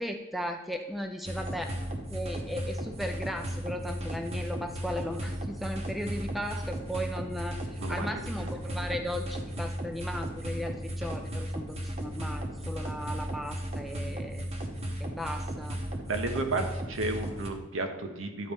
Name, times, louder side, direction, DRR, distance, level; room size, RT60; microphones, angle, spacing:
voice 1, 0.0-1.8 2.1-14.4 15.0-15.8, equal, ahead, 4 dB, 0.4 m, -36 dB
sound 1, 1.2-17.5, right 1 dB, 30° right, 0.8 m, -35 dB
voice 2, 16.0-18.5, right 2 dB, 75° right, 5 dB, 0.9 m, -32 dB
10.5 x 4.2 x 3.4 m, 1.1 s
head